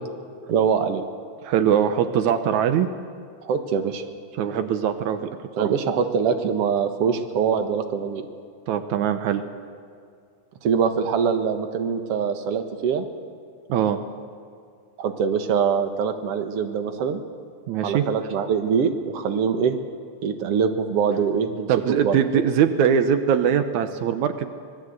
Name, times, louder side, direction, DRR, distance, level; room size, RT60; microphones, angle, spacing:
voice 1, 0.5-1.0 3.4-4.0 5.6-8.3 10.6-13.0 15.0-17.2 17.8-19.8 20.2-21.7 22.0-22.2, right 6 dB, 60° right, 6 dB, 2.3 m, -23 dB
voice 2, 1.4-2.9 4.4-5.2 5.6-5.7 8.7-9.4 13.7-14.0 17.7-18.0 21.7-24.6, right 8 dB, 85° right, 9 dB, 2.4 m, -21 dB
26.0 x 20.5 x 8.1 m, 2.3 s
omnidirectional pair, 3.3 m